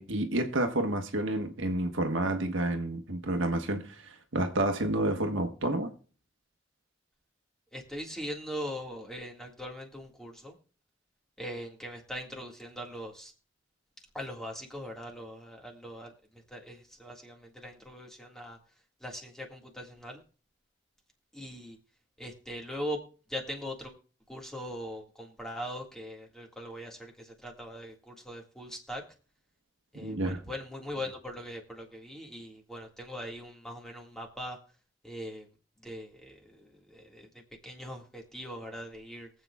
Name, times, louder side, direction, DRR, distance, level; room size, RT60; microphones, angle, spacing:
voice 1, 0.0-5.9 30.0-30.4, right 1 dB, 75° right, 1.4 m, -30 dB
voice 2, 7.7-10.5 11.4-13.3 14.1-16.1 16.5-18.6 19.0-20.2 21.3-21.8 22.2-23.0 23.3-23.9 24.3-29.0 29.9-34.6 35.0-35.5 35.8-37.3 37.6-39.3, equal, 5° left, 1.8 m, -41 dB
23.0 x 7.9 x 2.3 m
head